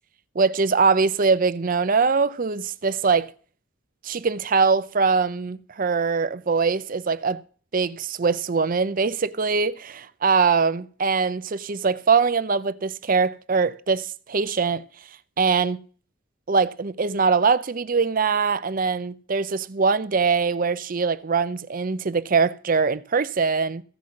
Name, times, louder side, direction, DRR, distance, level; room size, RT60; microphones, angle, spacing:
voice 1, 0.4-3.3 4.0-7.4 7.7-14.8 15.4-15.8 16.5-23.8, right 5 dB, 45° right, 0.6 m, -22 dB
15.5 x 5.6 x 7.7 m
head